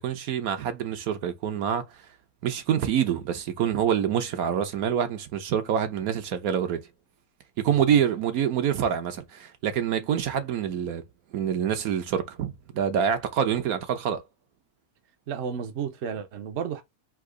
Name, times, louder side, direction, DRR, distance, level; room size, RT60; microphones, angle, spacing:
voice 1, 0.0-2.0 2.4-6.8 7.6-11.0 11.3-14.2, right 8 dB, 70° right, 1.2 m, -26 dB
voice 2, 7.7-8.0 15.3-16.8, right 7 dB, 55° right, 0.9 m, -33 dB
3.7 x 2.9 x 4.8 m
omnidirectional pair, 1.6 m